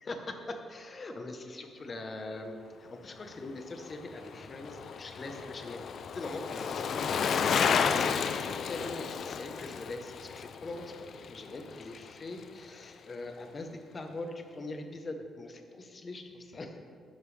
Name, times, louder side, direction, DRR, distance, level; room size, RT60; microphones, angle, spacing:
voice 1, 0.0-0.3 0.7-5.9 6.1-10.9 11.2-16.8, left 2 dB, 30° left, 5 dB, 1.0 m, -42 dB
Bicycle, 3.7-12.1 12.4-12.5, left 7 dB, 55° left, 0.4 m, -32 dB
10.5 x 10.5 x 3.4 m, 2.2 s
cardioid pair, 130°, 0 cm